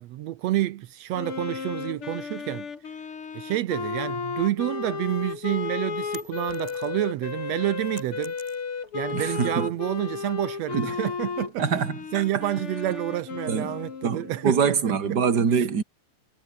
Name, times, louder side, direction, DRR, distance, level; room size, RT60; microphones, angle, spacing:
voice 1, 0.0-2.7 3.3-8.4 8.9-11.7 12.1-15.2 15.5-15.7, right 14 dB, 85° right, 1.5 m, -29 dB
Wind instrument woodwind instrument, 1.1-14.5, left 6 dB, 40° left, 3.3 m, -34 dB
sound 1, 6.1-7.1 7.5-9.0, right 1 dB, 10° right, 5.4 m, -48 dB
voice 2, 9.1-9.7 10.7-10.9 11.6-12.2 13.5-13.7 14.0-15.8, right 6 dB, 35° right, 2.3 m, -24 dB
omnidirectional pair, 4.2 m